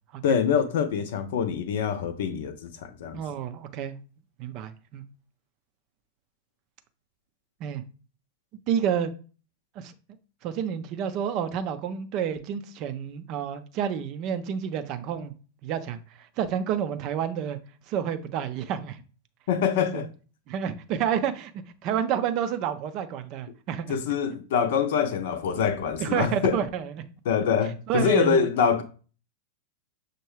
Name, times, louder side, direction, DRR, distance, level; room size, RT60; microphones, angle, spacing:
voice 1, 0.2-3.2 19.5-20.1 23.9-26.6 27.2-28.8, left 7 dB, 55° left, 0.5 m, -25 dB
voice 2, 3.1-4.0 4.4-5.0 7.6-7.8 8.7-9.1 9.8-9.9 10.4-15.3 15.6-17.6 17.9-19.0 19.9-20.0 20.5-23.9 26.0-26.9 27.9-28.4, right 8 dB, 40° right, 0.4 m, -29 dB
6.0 x 2.2 x 3.2 m
figure-of-eight pair, 90°, 0 cm